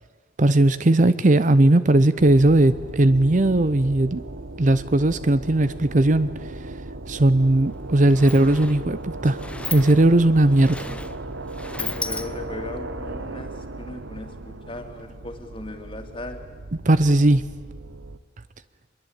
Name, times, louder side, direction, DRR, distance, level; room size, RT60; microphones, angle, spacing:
voice 1, 0.4-4.2 4.6-6.3 7.1-9.4 9.7-10.9 16.9-17.5, right 1 dB, 40° right, 14 dB, 0.7 m, -18 dB
sound 1, 2.2-18.2, right 2 dB, 85° right, 1.2 m, -36 dB
Sliding door, 7.4-7.5 7.8-12.7, left 2 dB, 5° left, 0.7 m, -36 dB
voice 2, 11.5-16.4, left 1 dB, 30° left, 5 dB, 2.5 m, -38 dB
24.5 x 22.0 x 8.8 m, 1.5 s
head